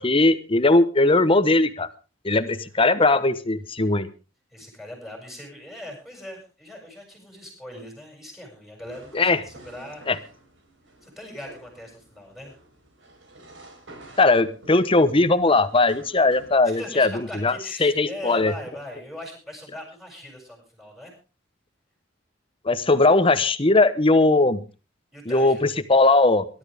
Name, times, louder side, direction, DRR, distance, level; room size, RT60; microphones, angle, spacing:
voice 1, 0.0-1.9 2.2-4.1 9.1-9.4 10.1-10.2 14.2-17.1 17.4-17.5 17.8-18.5 22.6-24.6 25.3-26.5, left 2 dB, 30° left, 13 dB, 1.0 m, -19 dB
voice 2, 4.5-10.3 11.0-12.6 16.6-21.1 25.1-25.7, left 1 dB, ahead, 0 dB, 7.2 m, -40 dB
sound 1, 8.8-16.6, right 1 dB, 70° right, 4.3 m, -50 dB
22.0 x 12.5 x 3.5 m, 0.34 s
head